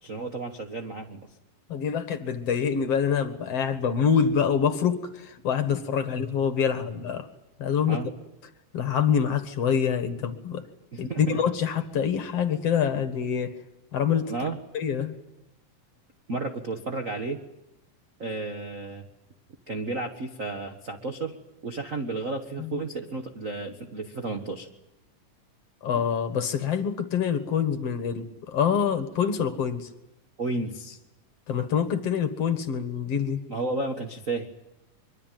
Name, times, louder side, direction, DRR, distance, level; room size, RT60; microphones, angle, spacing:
voice 1, 0.0-1.2 7.9-8.1 10.9-11.4 14.3-14.6 16.3-17.4 18.2-19.1 19.7-21.4 21.6-24.7 25.9-26.0 30.4-31.0 33.5-34.5, right 3 dB, 60° right, 6 dB, 0.8 m, -32 dB
voice 2, 1.7-7.3 7.6-8.0 8.7-10.7 11.0-13.6 13.9-14.3 14.7-15.2 22.6-22.8 25.8-29.9 31.5-33.4, left 7 dB, 55° left, 10 dB, 2.2 m, -26 dB
24.0 x 23.5 x 9.1 m, 0.88 s
omnidirectional pair, 3.8 m